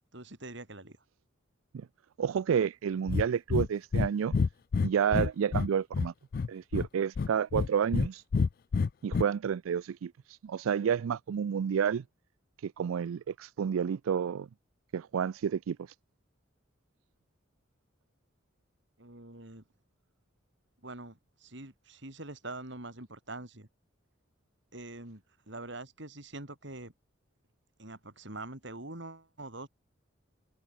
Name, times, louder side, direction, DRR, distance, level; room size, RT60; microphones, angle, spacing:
voice 1, 0.1-1.0 19.0-19.6 20.8-23.7 24.7-26.9 27.8-29.7, right 2 dB, 60° right, 3.6 m, -44 dB
voice 2, 2.2-4.3 4.8-6.1 6.5-8.2 9.0-12.0 12.6-14.5 14.9-15.8, right 7 dB, 90° right, 0.4 m, -30 dB
Breathing, 3.1-3.3 3.5-3.7 3.9-4.1 4.3-5.7 5.9-6.9 7.2-8.1 8.3-9.2, left 5 dB, 45° left, 0.3 m, -27 dB
head